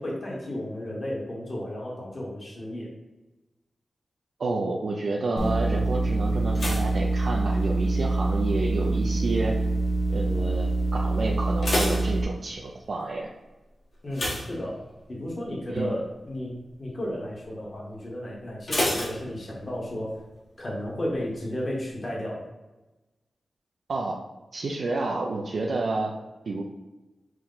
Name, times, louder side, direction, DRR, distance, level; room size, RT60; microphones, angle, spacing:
voice 1, 0.0-2.9 14.0-14.8 15.1-20.1 20.6-22.4, left 1 dB, 40° left, -4 dB, 1.2 m, -33 dB
voice 2, 4.4-9.6 10.1-13.3 15.7-16.0 23.9-24.2 24.5-26.1 26.5-26.6, right 3 dB, 65° right, -1 dB, 0.4 m, -29 dB
sound 1, 5.4-12.2, right 2 dB, 30° right, 0.7 m, -25 dB
sound 2, 6.5-8.0 8.3-8.8 9.4-9.8 10.0-10.1 10.5-10.6 11.3-12.8 14.1-15.2 15.6-15.9 16.2-16.3 18.7-19.9 20.1-20.2, left 1 dB, 65° left, 1.5 m, -30 dB
6.0 x 2.2 x 3.8 m, 1.1 s
wide cardioid pair, 125°, 0 cm